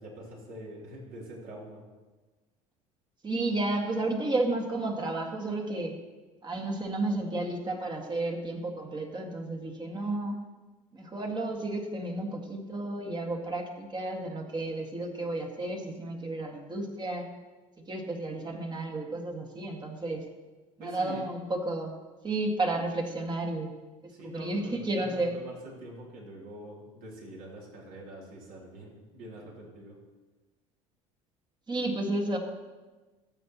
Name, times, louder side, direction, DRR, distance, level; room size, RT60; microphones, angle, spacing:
voice 1, 0.0-1.8 20.8-21.3 24.1-30.0, equal, 55° right, -3 dB, 3.3 m, -45 dB
voice 2, 3.2-5.9 6.4-10.4 10.9-17.3 17.9-20.2 20.8-22.0 22.2-23.7 24.2-25.4 31.7-32.4, right 2 dB, 25° right, 2 dB, 1.9 m, -32 dB
14.0 x 7.8 x 3.1 m, 1.2 s
hypercardioid pair, 70°, 18 cm